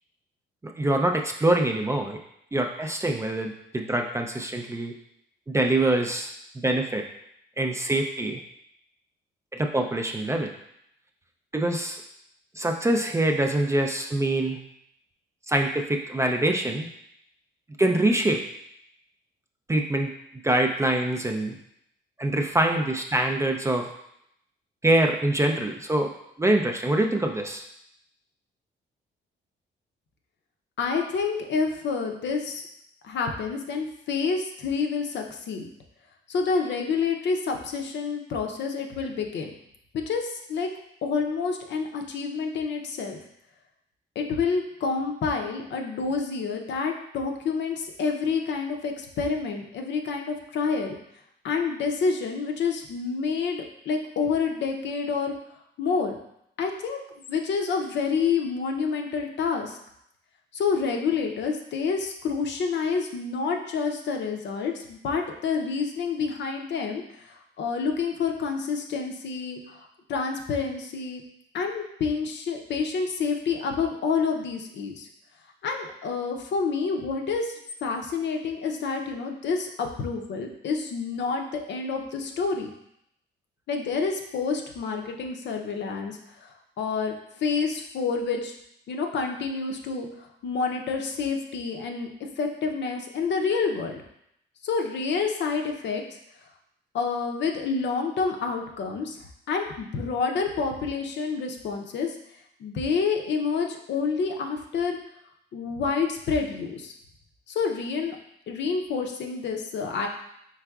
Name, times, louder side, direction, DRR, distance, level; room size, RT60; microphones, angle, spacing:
voice 1, 0.6-2.2 2.5-4.9 5.5-7.0 7.6-8.4 9.5-10.5 11.5-12.0 12.6-14.6 15.5-16.9 17.8-18.4 19.7-20.1 20.4-21.6 22.2-23.9 24.8-26.1 26.4-27.6, right 1 dB, 15° right, 3 dB, 0.4 m, -24 dB
voice 2, 30.8-32.7 33.0-35.7 36.3-39.5 39.9-40.7 41.0-43.2 44.2-51.0 51.4-55.3 55.8-56.2 56.6-57.0 57.3-59.8 60.5-71.2 71.5-75.1 75.6-77.5 77.8-82.7 83.7-86.5 86.8-87.1 87.4-88.5 88.9-92.1 92.4-94.0 94.6-96.0 96.9-99.2 99.5-102.2 102.6-105.0 105.5-106.9 107.5-108.2 108.5-110.1, left 5 dB, 65° left, 3 dB, 0.6 m, -28 dB
4.7 x 3.5 x 2.3 m, 0.75 s
cardioid pair, 90°, 20 cm